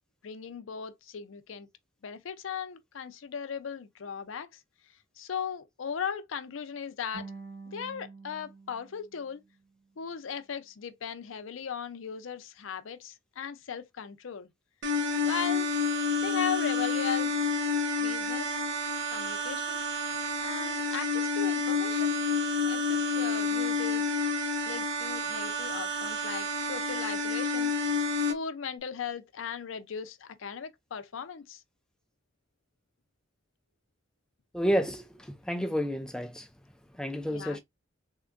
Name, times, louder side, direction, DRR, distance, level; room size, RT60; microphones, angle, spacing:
voice 1, 0.2-1.7 2.0-4.6 5.2-7.3 7.7-9.4 10.0-14.5 15.2-15.7 16.2-17.4 18.0-18.6 19.1-19.8 20.4-22.1 22.7-24.1 24.7-28.0 28.3-31.6 37.3-37.6, left 7 dB, 75° left, 0.5 m, -38 dB
sound 1, 7.1-10.2, right 4 dB, 90° right, 1.2 m, -48 dB
sound 2, 14.8-28.3, left 3 dB, 65° right, 0.6 m, -29 dB
voice 2, 34.5-36.5 37.0-37.6, equal, 5° left, 0.3 m, -30 dB
3.5 x 2.2 x 2.5 m
head